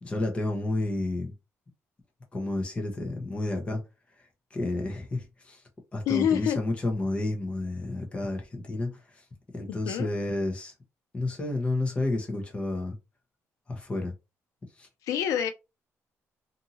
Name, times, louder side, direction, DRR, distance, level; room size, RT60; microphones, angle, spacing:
voice 1, 0.0-1.3 2.3-3.8 4.5-5.6 5.9-9.2 9.5-10.7 11.1-13.0 13.7-14.1 14.8-14.9, left 2 dB, 20° left, 0.9 m, -30 dB
voice 2, 6.1-6.6 9.7-10.1 15.0-15.5, left 9 dB, 90° left, 0.5 m, -26 dB
2.7 x 2.7 x 2.7 m
cardioid pair, 135°, 6 cm